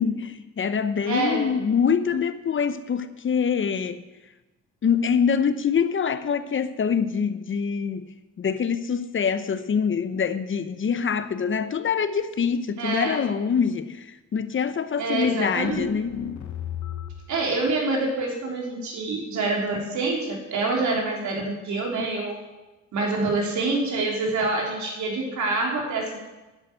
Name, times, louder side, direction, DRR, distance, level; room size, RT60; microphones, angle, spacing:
voice 1, 0.0-4.0 4.8-8.1 8.4-16.2, left 6 dB, 40° left, 0.9 m, -25 dB
voice 2, 1.1-1.6 12.8-13.2 15.0-15.9 17.3-22.4 22.9-26.2, right 3 dB, 75° right, 3.5 m, -26 dB
sound 1, 15.6-17.4, left 9 dB, 70° left, 1.2 m, -34 dB
10.0 x 8.3 x 9.2 m
cardioid pair, 80°, 29 cm